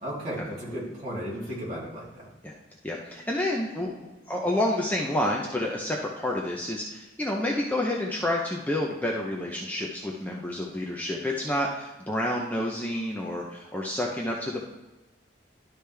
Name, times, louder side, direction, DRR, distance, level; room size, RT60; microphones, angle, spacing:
voice 1, 0.0-2.1, equal, 35° right, -7 dB, 3.0 m, -34 dB
voice 2, 2.8-14.6, left 1 dB, 10° left, -2 dB, 0.7 m, -29 dB
12.0 x 4.9 x 3.4 m, 1.1 s
head